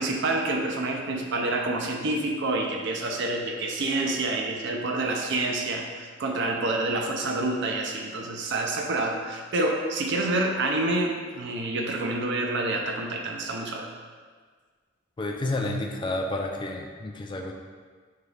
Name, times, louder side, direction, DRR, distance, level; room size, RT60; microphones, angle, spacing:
voice 1, 0.0-13.9, right 2 dB, 60° right, 2 dB, 0.6 m, -28 dB
voice 2, 15.2-17.5, left 2 dB, 25° left, 1 dB, 0.4 m, -30 dB
5.6 x 2.3 x 3.3 m, 1.5 s
head